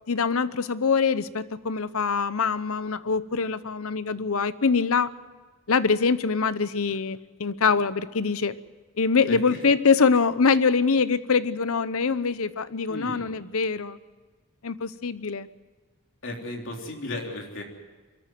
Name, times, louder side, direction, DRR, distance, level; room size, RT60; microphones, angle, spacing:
voice 1, 0.1-5.1 5.7-8.6 9.0-14.0 14.6-15.5, left 5 dB, 75° left, 15 dB, 0.8 m, -24 dB
voice 2, 9.3-9.6 12.9-13.3 16.2-17.6, left 1 dB, 55° left, 1 dB, 3.5 m, -35 dB
23.5 x 13.5 x 9.2 m, 1.3 s
head